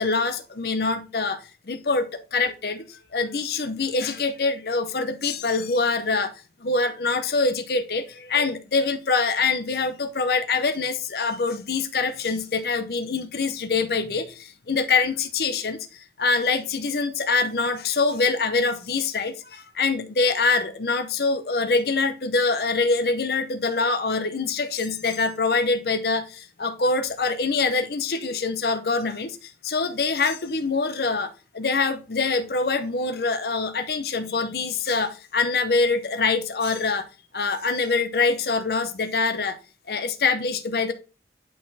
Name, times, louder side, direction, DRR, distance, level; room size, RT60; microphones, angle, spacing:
voice 1, 0.0-6.3 6.6-37.1 37.3-39.6 39.9-40.9, left 4 dB, 60° left, 0.6 m, -24 dB
8.4 x 4.2 x 4.0 m
head